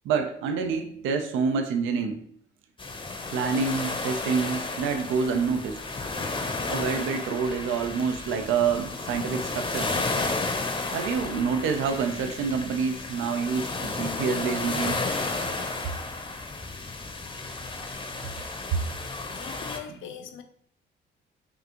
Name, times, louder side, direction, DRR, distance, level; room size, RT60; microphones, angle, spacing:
voice 1, 0.0-2.2 3.3-5.8 6.7-9.9 10.9-15.0, right 5 dB, 85° right, 0.5 m, -27 dB
sound 1, 2.8-19.8, left 3 dB, 25° left, 0.6 m, -32 dB
voice 2, 19.3-20.4, left 9 dB, 75° left, 0.6 m, -41 dB
5.6 x 2.5 x 2.8 m
cardioid pair, 90°, 20 cm